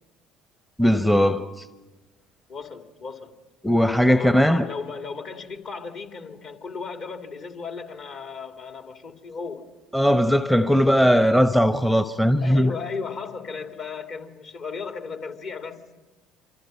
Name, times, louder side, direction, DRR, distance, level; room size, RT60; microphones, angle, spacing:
voice 1, 0.8-1.6 3.6-4.7 9.9-12.7, equal, 5° left, 0.9 m, -19 dB
voice 2, 2.5-3.4 4.0-9.7 12.4-15.8, left 5 dB, 50° left, 2.4 m, -35 dB
27.0 x 26.0 x 5.5 m
figure-of-eight pair, 60°, 0 cm